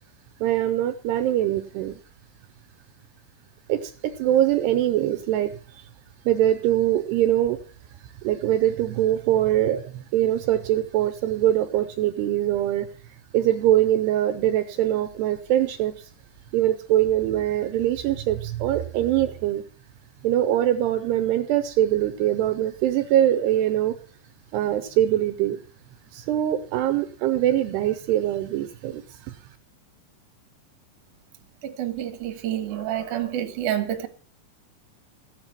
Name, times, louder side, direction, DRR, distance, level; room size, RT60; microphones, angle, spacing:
voice 1, 0.4-2.0 3.7-5.8 6.3-7.6 8.2-12.9 13.3-16.1 16.5-19.6 20.2-23.9 24.5-25.6 26.1-29.4, right 12 dB, 75° right, 2.7 m, -23 dB
voice 2, 31.6-34.1, right 11 dB, 60° right, 2.4 m, -28 dB
15.0 x 9.0 x 6.0 m
omnidirectional pair, 5.1 m